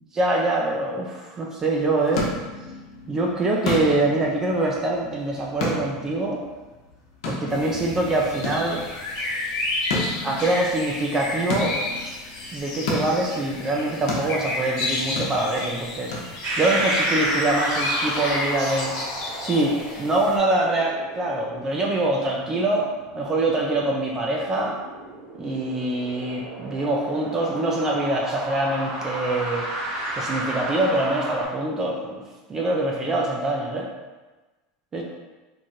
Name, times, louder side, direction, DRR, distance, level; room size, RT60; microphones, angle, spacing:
voice 1, 0.1-2.3 3.1-6.4 7.3-8.8 10.2-11.8 12.5-16.1 16.6-19.0 19.4-22.9 23.1-24.8 25.4-29.7 30.2-32.2 32.5-33.9 34.9-35.0, right 2 dB, 20° right, -1 dB, 0.3 m, -24 dB
sound 1, 1.6-16.8, left 2 dB, 80° left, 0.8 m, -34 dB
sound 2, 7.5-20.4, left 2 dB, 60° left, 1.0 m, -31 dB
sound 3, 16.4-31.4, right 1 dB, 40° right, 1.2 m, -32 dB
3.1 x 2.4 x 4.2 m, 1.2 s
supercardioid pair, 160°, 3 cm